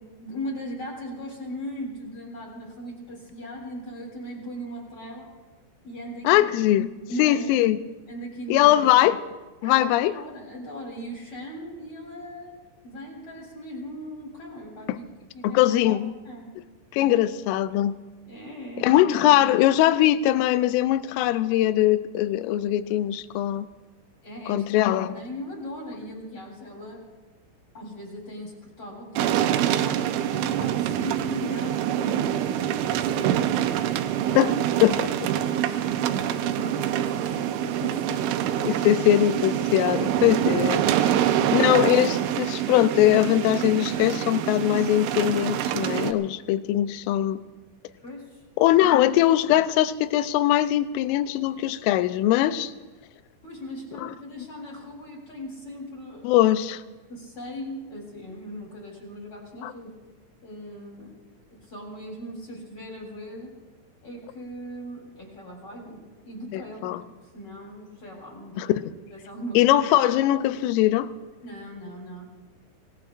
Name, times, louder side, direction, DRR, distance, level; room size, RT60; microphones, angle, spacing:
voice 1, 0.2-5.3 5.8-6.5 7.1-7.6 8.1-8.8 9.6-12.5 12.8-15.1 15.3-16.0 16.2-16.5 18.3-19.0 24.2-24.6 25.1-27.0 27.7-33.4 35.3-38.7 41.1-41.7 42.6-42.7 48.0-48.8 53.4-56.4 57.1-59.9 60.4-61.2 61.5-63.5 64.0-68.8 69.1-69.8 71.4-72.2, equal, 30° left, 3.7 m, -39 dB
voice 2, 6.2-6.9 7.2-7.8 8.5-9.2 9.6-10.1 15.4-16.1 16.9-18.0 18.8-23.7 24.5-25.2 34.4-34.5 34.8-35.1 38.6-41.1 41.5-47.4 48.6-52.7 54.0-54.1 56.2-56.8 59.6-59.7 66.5-67.0 68.6-68.7 69.6-71.1, left 13 dB, 85° left, 3.1 m, -21 dB
sound 1, 29.2-46.1, right 10 dB, 80° right, 2.9 m, -25 dB
27.0 x 18.0 x 2.5 m
omnidirectional pair, 5.7 m